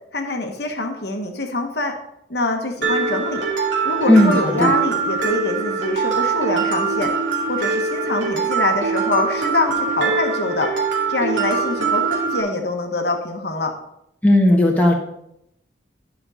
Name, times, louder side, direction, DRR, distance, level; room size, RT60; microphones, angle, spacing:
voice 1, 0.1-1.9 2.3-3.4 3.8-7.1 7.5-10.7 11.1-13.7, left 2 dB, 60° left, 3 dB, 1.1 m, -24 dB
Mallet percussion, 2.8-12.4, right 5 dB, 85° right, 2.4 m, -22 dB
voice 2, 4.1-4.7 14.2-14.9, left 1 dB, 10° left, -1 dB, 1.3 m, -15 dB
11.0 x 5.2 x 4.9 m, 0.77 s
head